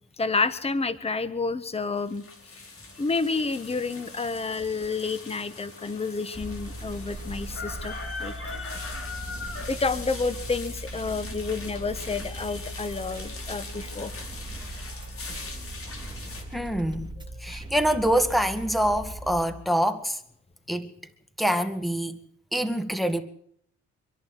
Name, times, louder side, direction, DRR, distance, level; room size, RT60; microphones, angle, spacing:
voice 1, 0.2-2.2 3.0-8.7 9.7-14.1, left 4 dB, 20° left, 1.3 m, -29 dB
sound 1, 2.0-16.4, left 3 dB, 45° left, 5.3 m, -41 dB
sound 2, 6.3-19.4, right 1 dB, 15° right, 3.4 m, -39 dB
voice 2, 16.5-17.1 17.4-20.2 20.7-20.9 21.4-22.2 22.5-23.2, equal, ahead, 2.0 m, -25 dB
25.5 x 11.5 x 9.9 m
cardioid pair, 90°, 30 cm